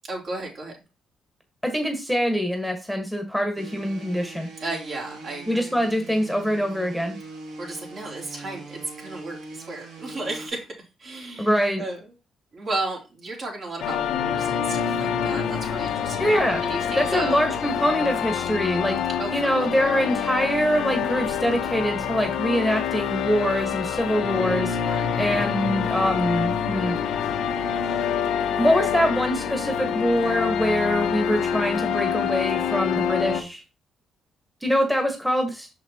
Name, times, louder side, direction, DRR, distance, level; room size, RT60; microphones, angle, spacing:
voice 1, 0.1-0.8 4.6-5.8 7.6-10.7 11.0-12.1 12.5-16.3 16.6-17.6 19.2-19.3 24.8-25.2, right 2 dB, 50° right, 0 dB, 2.9 m, -34 dB
voice 2, 1.6-4.5 5.5-7.1 11.4-11.8 16.2-19.0 19.3-27.0 28.6-33.6 34.6-35.7, equal, ahead, 4 dB, 1.4 m, -24 dB
sound 1, 3.6-10.5, right 3 dB, 85° right, 1.5 m, -42 dB
sound 2, 13.8-33.4, left 8 dB, 85° left, 1.0 m, -26 dB
6.1 x 6.0 x 2.9 m, 0.29 s
cardioid pair, 90°, 0 cm